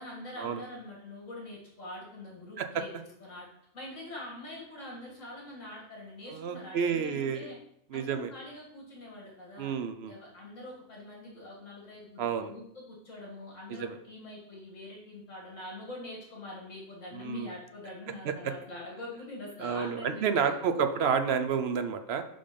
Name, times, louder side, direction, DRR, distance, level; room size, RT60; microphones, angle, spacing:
voice 1, 0.0-2.9 3.2-3.5 3.7-7.6 7.9-9.8 10.1-20.8, left 1 dB, 65° left, -3 dB, 2.3 m, -44 dB
voice 2, 6.3-7.5 7.9-8.3 9.6-10.1 12.2-12.5 13.7-14.0 17.1-17.5 18.2-18.5 19.6-22.2, right 6 dB, 60° right, 9 dB, 0.7 m, -30 dB
5.5 x 5.2 x 5.1 m, 0.72 s
omnidirectional pair, 1.4 m